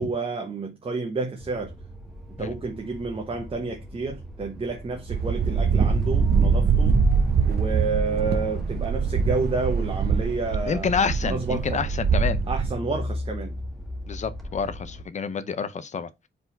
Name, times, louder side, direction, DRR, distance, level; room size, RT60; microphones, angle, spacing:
voice 1, 0.0-1.7 2.4-7.0 7.4-10.9 11.2-11.9 12.5-13.6, right 4 dB, 30° right, 1.1 m, -30 dB
sound 1, 1.4-15.0, equal, ahead, 1.5 m, -36 dB
sound 2, 5.1-12.7, right 5 dB, 60° right, 0.9 m, -23 dB
voice 2, 10.7-12.4 14.1-16.1, left 6 dB, 40° left, 0.8 m, -28 dB
4.9 x 3.9 x 5.3 m
wide cardioid pair, 155°, 18 cm